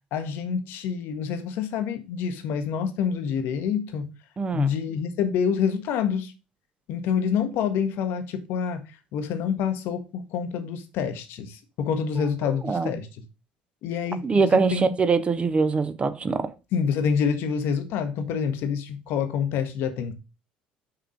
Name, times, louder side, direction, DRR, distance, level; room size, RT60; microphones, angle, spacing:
voice 1, 0.1-4.1 4.5-6.3 6.9-8.8 9.1-13.1 13.8-14.9 16.7-20.1, left 7 dB, 55° left, 0.8 m, -27 dB
voice 2, 4.4-4.7 12.2-12.9 14.2-16.5, right 4 dB, 25° right, 0.6 m, -24 dB
5.7 x 3.7 x 5.0 m
figure-of-eight pair, 60°, 4 cm